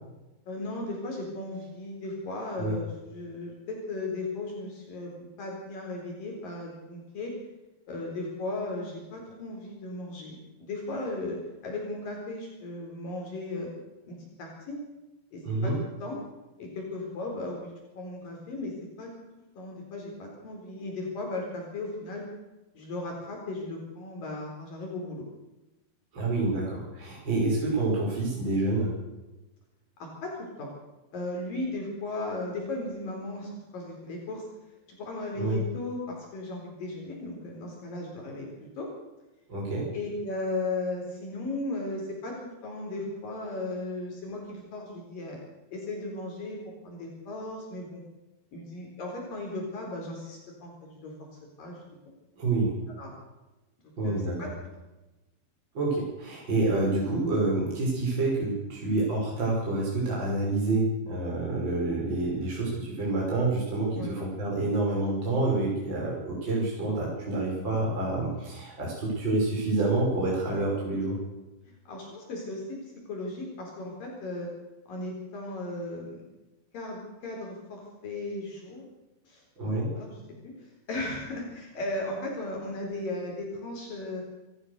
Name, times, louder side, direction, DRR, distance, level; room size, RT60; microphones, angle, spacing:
voice 1, 0.5-7.3 7.9-13.7 14.1-14.8 15.3-15.7 16.0-16.2 16.6-18.7 19.0-19.1 19.6-22.3 22.8-25.3 30.0-30.3 30.6-30.7 31.1-34.5 34.9-38.5 38.8-38.9 39.9-45.4 45.7-46.6 46.8-48.0 48.5-51.1 51.6-51.8 53.0-53.1 54.0-54.5 64.0-64.2 71.7-74.5 74.9-76.2 76.7-78.9 79.3-79.4 79.7-80.2 80.6-84.2, left 2 dB, 60° left, 0 dB, 5.7 m, -36 dB
voice 2, 15.4-15.7 26.1-28.9 35.3-35.6 39.5-39.9 52.4-52.7 54.0-54.5 55.7-71.2 79.6-79.9, right 2 dB, 30° right, -4 dB, 6.4 m, -28 dB
27.5 x 14.5 x 6.7 m, 1.0 s
omnidirectional pair, 4.4 m